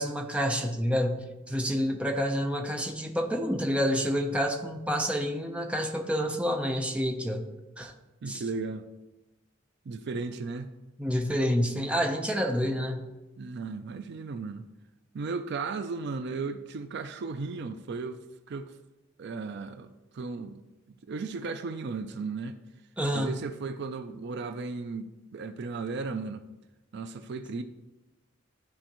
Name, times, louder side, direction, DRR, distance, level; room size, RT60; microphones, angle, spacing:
voice 1, 0.0-7.4 7.8-7.9 8.3-8.4 11.0-13.0 23.0-23.3, equal, 5° right, 0.7 m, -28 dB
voice 2, 8.2-8.8 9.9-10.7 13.4-14.6 15.1-18.2 18.5-18.8 19.2-20.6 21.0-22.6 23.1-26.4 26.9-27.6, right 4 dB, 60° right, 0.4 m, -35 dB
12.5 x 4.3 x 3.0 m
head